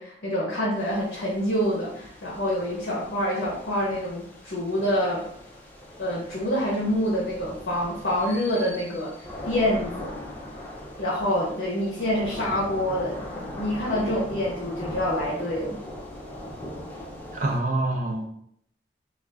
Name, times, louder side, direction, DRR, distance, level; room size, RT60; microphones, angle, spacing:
voice 1, 0.0-5.3 6.0-9.1 9.5-10.1 11.0-13.2 13.6-15.8, equal, 65° left, -5 dB, 0.7 m, -26 dB
sound 1, 0.8-17.6, left 1 dB, 10° left, 0.4 m, -40 dB
voice 2, 17.3-18.2, right 2 dB, 45° right, 1 dB, 0.5 m, -26 dB
2.4 x 2.2 x 3.3 m, 0.69 s
head